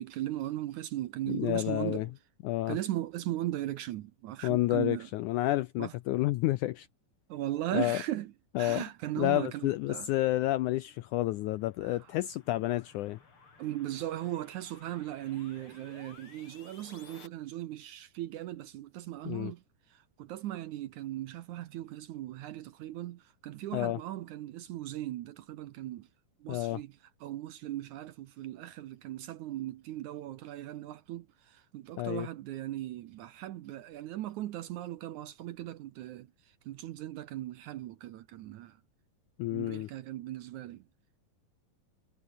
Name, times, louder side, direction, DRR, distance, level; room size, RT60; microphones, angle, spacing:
voice 1, 0.0-2.1 2.7-5.1 5.8-5.9 7.3-8.3 8.6-10.1 11.8-12.1 13.6-26.1 26.4-38.8 39.5-40.8, right 14 dB, 70° right, 1.9 m, -38 dB
voice 2, 1.3-2.1 2.4-2.8 4.4-6.9 7.7-8.0 8.6-8.8 9.2-13.2 19.3-19.5 23.7-24.0 26.5-26.8 32.0-32.3 39.4-39.9, left 16 dB, 85° left, 1.8 m, -30 dB
sound 1, 10.8-17.3, left 4 dB, 35° left, 4.7 m, -57 dB
omnidirectional pair, 4.2 m